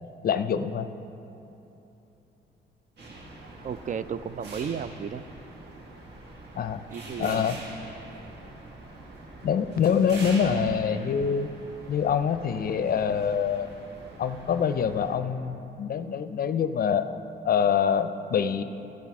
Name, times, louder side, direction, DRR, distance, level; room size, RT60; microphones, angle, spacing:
voice 1, 0.2-0.9 6.6-6.8 7.2-7.6 9.4-11.5 11.9-13.7 14.2-17.2 17.4-18.6, left 7 dB, 50° left, 11 dB, 0.5 m, -25 dB
sound 1, 3.0-15.2, right 2 dB, 60° right, 1.8 m, -44 dB
voice 2, 3.6-5.2 6.9-7.5, right 7 dB, 40° right, 13 dB, 0.4 m, -34 dB
15.5 x 5.8 x 4.8 m, 3.0 s
cardioid pair, 90°, 20 cm